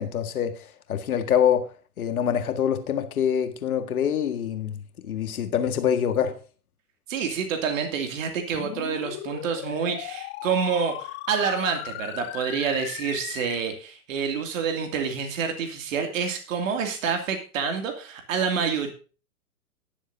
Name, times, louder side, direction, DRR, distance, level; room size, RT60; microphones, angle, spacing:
voice 1, 0.0-6.4, left 8 dB, 70° left, 1.9 m, -25 dB
voice 2, 7.1-18.9, right 6 dB, 60° right, 2.7 m, -28 dB
sound 1, 8.5-13.6, left 16 dB, 25° left, 0.7 m, -37 dB
19.5 x 7.4 x 2.7 m
hypercardioid pair, 115°, 45 cm